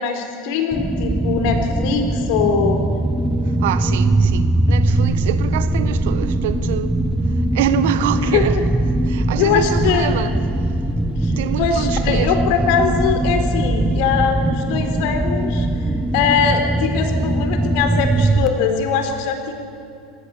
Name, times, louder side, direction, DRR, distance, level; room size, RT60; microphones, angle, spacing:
voice 1, 0.0-2.8 8.3-8.4 9.4-10.1 11.2-11.3 11.6-15.7 16.1-19.5, left 6 dB, 65° left, 4.0 m, -21 dB
sound 1, 0.7-18.5, right 2 dB, 5° right, 0.9 m, -20 dB
voice 2, 3.4-6.9 7.3-8.6 9.0-10.3 10.6-10.8 11.4-12.3, right 10 dB, 80° right, 1.4 m, -25 dB
26.0 x 19.5 x 8.5 m
supercardioid pair, 145°, 0 cm